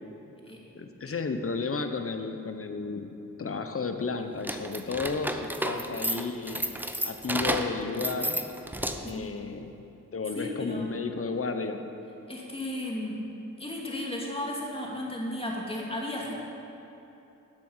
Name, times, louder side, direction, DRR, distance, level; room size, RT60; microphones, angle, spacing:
voice 1, 0.8-6.6 7.0-8.4 9.0-9.7 10.1-11.8, left 4 dB, 45° left, 7 dB, 1.0 m, -33 dB
sound 1, 4.4-9.2, right 1 dB, 5° right, 0.7 m, -32 dB
voice 2, 10.3-10.9 12.3-13.2 13.6-16.3, left 1 dB, 15° left, -3 dB, 2.4 m, -34 dB
12.0 x 7.5 x 5.8 m, 3.0 s
cardioid pair, 65°, 32 cm